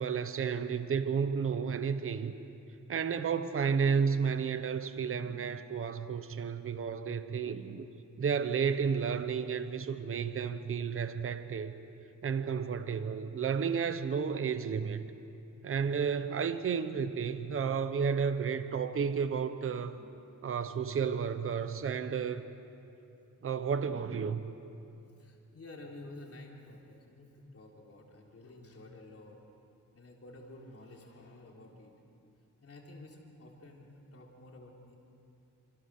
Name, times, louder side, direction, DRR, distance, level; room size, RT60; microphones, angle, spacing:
voice 1, 0.0-2.3 2.9-7.9 8.2-11.7 12.2-15.1 15.6-20.0 20.4-22.5 23.4-24.5, right 6 dB, 45° right, 11 dB, 0.9 m, -32 dB
voice 2, 25.2-29.4 29.9-32.1 32.6-35.0, left 2 dB, 45° left, -1 dB, 3.8 m, -51 dB
27.5 x 26.5 x 6.6 m, 2.7 s
wide cardioid pair, 180°, 31 cm